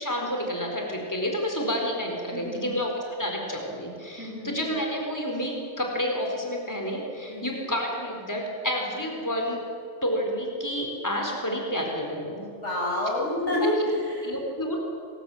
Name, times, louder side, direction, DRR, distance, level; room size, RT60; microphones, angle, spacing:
voice 1, 0.0-9.6 10.0-12.4 13.5-13.6 14.2-14.8, equal, 15° left, 1 dB, 4.4 m, -29 dB
voice 2, 2.3-2.8 4.2-4.5 7.3-7.5 12.6-14.3, left 1 dB, 90° left, -2 dB, 8.3 m, -28 dB
29.0 x 21.5 x 9.2 m, 2.4 s
omnidirectional pair, 1.2 m